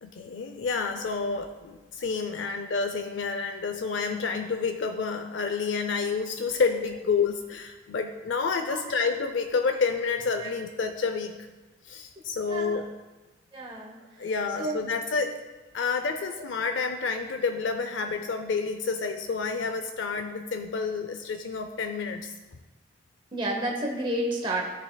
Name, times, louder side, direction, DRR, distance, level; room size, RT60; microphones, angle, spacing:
voice 1, 0.0-11.3 11.8-12.9 14.2-15.4 15.7-22.3, left 5 dB, 75° left, 6 dB, 0.5 m, -29 dB
voice 2, 12.5-12.8 13.5-14.0 14.6-14.9 16.4-16.5 23.3-24.7, right 1 dB, 25° right, -1 dB, 0.8 m, -30 dB
14.0 x 5.4 x 2.2 m, 1.2 s
head